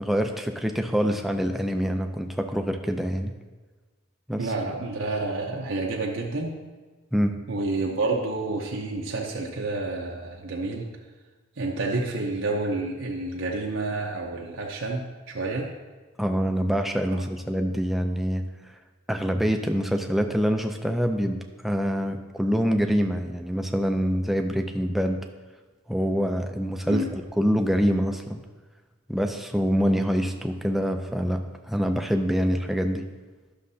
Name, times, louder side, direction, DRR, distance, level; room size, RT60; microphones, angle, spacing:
voice 1, 0.0-3.3 4.3-4.5 7.1-7.3 16.2-18.4 19.1-21.4 21.6-25.2 25.9-28.4 29.1-33.1, equal, ahead, 5 dB, 0.4 m, -25 dB
voice 2, 4.4-6.5 7.5-10.9 11.6-15.7 26.9-27.1, right 2 dB, 75° right, -2 dB, 0.7 m, -29 dB
11.5 x 6.4 x 2.7 m, 1.3 s
head